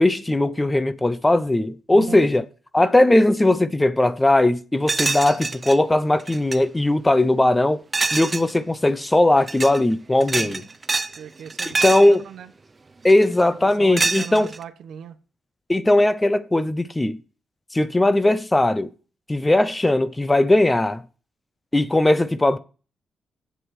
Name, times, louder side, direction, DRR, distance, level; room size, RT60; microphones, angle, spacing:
voice 1, 0.0-2.4 2.7-7.8 8.1-10.7 11.7-12.2 13.0-14.5 15.7-17.2 17.7-18.9 19.3-21.0 21.7-22.6, left 1 dB, 15° left, 0.7 m, -19 dB
voice 2, 1.9-2.3 10.3-10.7 11.1-12.5 13.6-15.2, right 8 dB, 80° right, 1.0 m, -37 dB
sound 1, 4.9-5.8 6.2-6.6 7.9-8.5 9.4-9.8 10.2-11.2 11.5-12.1 13.1-13.4 14.0-14.6, right 3 dB, 25° right, 0.6 m, -25 dB
8.3 x 7.8 x 6.3 m
cardioid pair, 110°, 0 cm